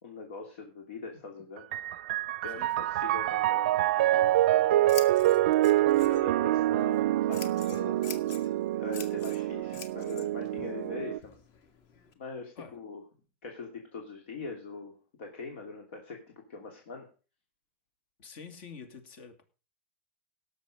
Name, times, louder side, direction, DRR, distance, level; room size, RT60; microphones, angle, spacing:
voice 1, 0.0-1.6 2.4-5.0 6.1-8.0 8.7-11.4 12.2-13.0 13.4-16.2 16.5-17.1, left 4 dB, 75° left, 2 dB, 2.7 m, -42 dB
Piano, 1.6-11.2, right 14 dB, 75° right, 0.5 m, -26 dB
Scissors, 4.0-12.1, left 6 dB, 40° left, 1.6 m, -48 dB
voice 2, 18.2-19.4, left 5 dB, 60° left, 9 dB, 2.6 m, -47 dB
17.5 x 6.8 x 5.2 m, 0.36 s
supercardioid pair, 155°, 6 cm